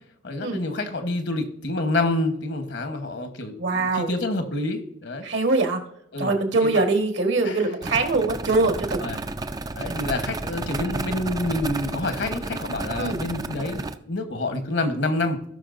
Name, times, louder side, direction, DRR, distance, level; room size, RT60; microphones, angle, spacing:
voice 1, 0.2-5.3 6.1-6.3 7.4-7.6 9.0-9.2 9.8-15.4, left 2 dB, 65° left, 7 dB, 1.2 m, -27 dB
voice 2, 3.6-4.1 5.2-5.8 6.2-9.0 13.0-13.2, right 3 dB, 70° right, 4 dB, 1.5 m, -23 dB
sound 1, 7.8-13.9, right 2 dB, 20° right, 0.4 m, -32 dB
17.5 x 5.9 x 2.6 m, 0.76 s
head